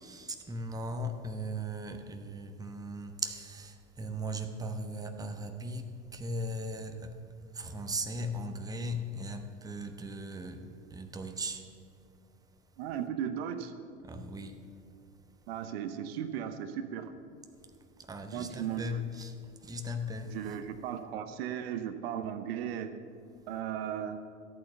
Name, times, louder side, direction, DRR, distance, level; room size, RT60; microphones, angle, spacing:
voice 1, 0.0-7.1 7.6-10.6 10.9-11.6 14.0-14.5 18.1-19.3 19.7-20.4, equal, 10° right, 6 dB, 1.0 m, -38 dB
voice 2, 12.8-13.7 15.5-17.1 18.3-19.0 20.3-22.9 23.5-24.2, right 9 dB, 55° right, 9 dB, 0.9 m, -36 dB
14.0 x 8.8 x 6.9 m, 2.4 s
figure-of-eight pair, 80°, 36 cm